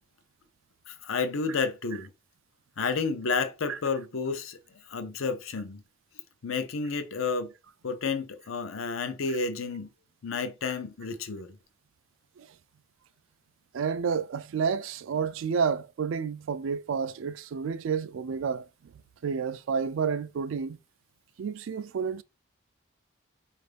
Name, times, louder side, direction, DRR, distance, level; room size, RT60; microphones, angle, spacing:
voice 1, 0.9-2.1 2.8-4.6 4.9-5.8 6.4-7.5 7.8-9.9 10.2-11.5, left 4 dB, 75° left, 0.6 m, -31 dB
voice 2, 13.7-18.6 19.2-20.8 21.4-22.2, right 6 dB, 70° right, 0.3 m, -30 dB
4.5 x 2.5 x 3.3 m
head